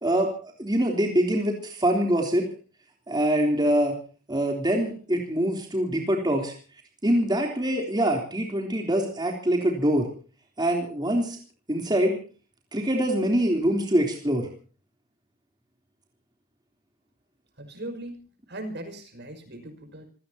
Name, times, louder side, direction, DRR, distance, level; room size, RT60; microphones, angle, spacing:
voice 1, 0.0-2.5 3.1-4.0 4.3-6.5 7.0-10.1 10.6-11.4 11.7-12.2 12.7-14.5, right 1 dB, 20° right, 1 dB, 3.5 m, -24 dB
voice 2, 17.6-20.0, right 1 dB, 55° right, 8 dB, 5.8 m, -39 dB
27.0 x 18.5 x 2.9 m, 0.40 s
head